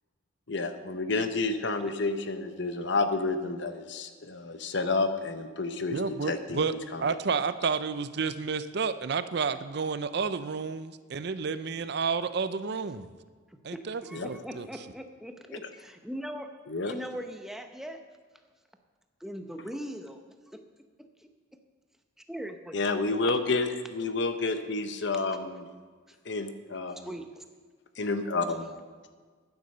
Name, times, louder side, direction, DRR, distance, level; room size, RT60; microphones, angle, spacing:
voice 1, 0.5-7.0 14.1-14.3 16.7-16.9 22.7-25.7 26.3-27.1 28.0-28.7, left 3 dB, 60° left, 9 dB, 0.9 m, -30 dB
voice 2, 5.9-6.7 7.0-13.1 13.6-14.0 14.3-14.7, right 5 dB, 55° right, 13 dB, 0.5 m, -30 dB
voice 3, 13.5-16.5 16.9-18.0 19.2-20.2 20.5-20.6 21.2-21.3 22.3-22.8 23.2-23.4 26.1-26.2 26.9-27.4, equal, ahead, 5 dB, 0.8 m, -40 dB
11.0 x 9.6 x 6.7 m, 1.5 s
head